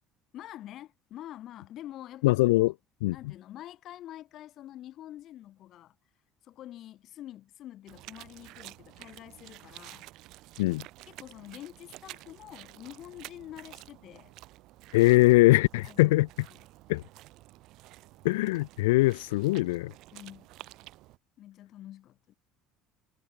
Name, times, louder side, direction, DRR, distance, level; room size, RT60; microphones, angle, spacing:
voice 1, 0.3-2.7 3.1-5.9 6.4-10.1 11.1-14.3 15.9-16.2 16.5-16.6 20.1-20.5 21.4-22.3, left 13 dB, 50° left, 4.9 m, -46 dB
voice 2, 2.2-2.7 3.0-3.2 10.6-10.8 14.9-16.3 16.9-17.0 18.2-19.9, left 20 dB, 70° left, 0.5 m, -22 dB
sound 1, 7.9-21.2, right 18 dB, 55° right, 7.2 m, -50 dB
figure-of-eight pair, 60°, 0 cm